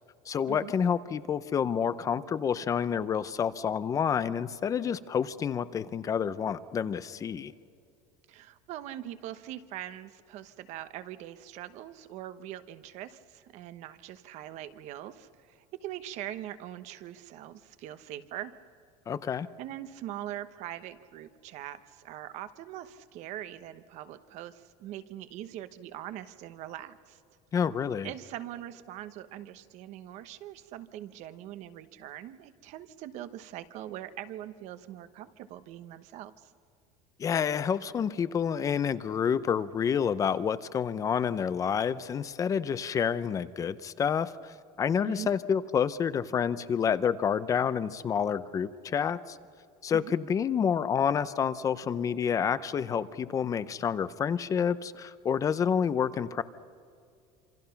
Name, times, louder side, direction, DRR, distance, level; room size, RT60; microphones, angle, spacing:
voice 1, 0.3-7.5 19.1-19.5 27.5-28.1 37.2-49.4 49.8-56.4, left 7 dB, 20° left, 15 dB, 0.6 m, -29 dB
voice 2, 8.3-18.5 19.6-27.2 28.0-36.5 45.0-45.3 49.9-50.2, right 12 dB, 50° right, 11 dB, 1.1 m, -42 dB
27.0 x 26.5 x 5.8 m, 2.4 s
cardioid pair, 165°, 16 cm